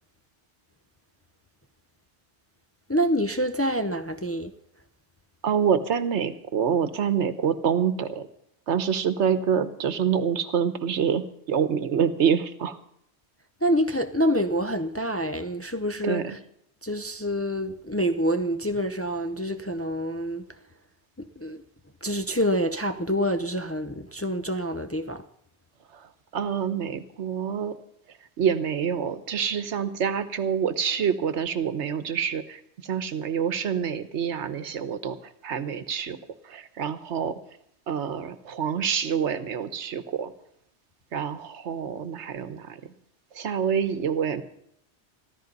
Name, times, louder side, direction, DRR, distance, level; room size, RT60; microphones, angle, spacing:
voice 1, 2.9-4.5 13.6-16.4 16.8-20.4 21.2-21.6 22.0-25.2, equal, 15° left, 0.5 m, -27 dB
voice 2, 5.4-8.3 8.7-12.8 16.0-16.4 25.9-26.1 26.3-27.7 28.4-35.2 35.4-36.2 36.4-37.4 37.9-40.3 41.1-42.9 43.3-44.4, right 7 dB, 80° right, 1.3 m, -26 dB
14.5 x 13.5 x 5.3 m
omnidirectional pair, 1.2 m